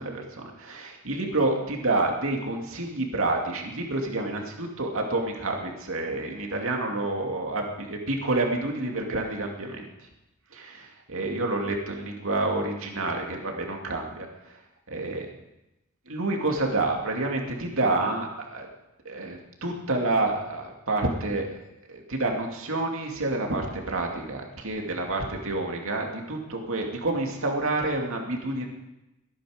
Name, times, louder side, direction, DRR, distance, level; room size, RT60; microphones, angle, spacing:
voice 1, 0.0-10.1 10.5-14.6 14.9-15.3 16.1-18.7 19.0-21.5 21.9-28.7, right 2 dB, 65° right, 1 dB, 2.6 m, -28 dB
22.0 x 10.0 x 5.1 m, 0.96 s
head